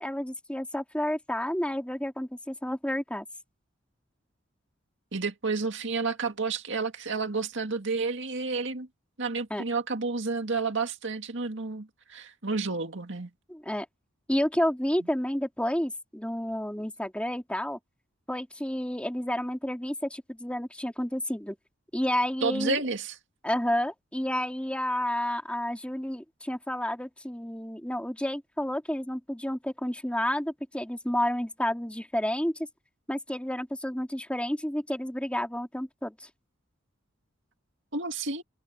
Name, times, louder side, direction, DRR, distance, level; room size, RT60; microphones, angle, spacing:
voice 1, 0.0-3.3 9.5-9.6 13.5-13.9 14.3-17.8 18.3-21.6 21.9-22.8 23.4-32.6 33.1-36.3, left 1 dB, 5° left, 2.4 m, -30 dB
voice 2, 5.1-8.9 9.2-13.3 22.4-23.1 37.9-38.4, right 4 dB, 65° right, 2.2 m, -30 dB
head